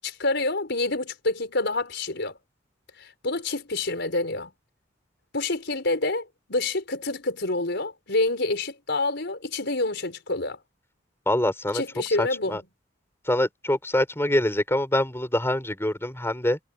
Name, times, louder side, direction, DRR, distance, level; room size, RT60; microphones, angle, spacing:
voice 1, 0.0-2.4 3.0-4.5 5.3-10.6 11.7-12.6, left 2 dB, 60° left, 5.3 m, -27 dB
voice 2, 11.3-11.8 12.2-12.6 13.2-16.6, left 1 dB, 15° left, 4.9 m, -25 dB
head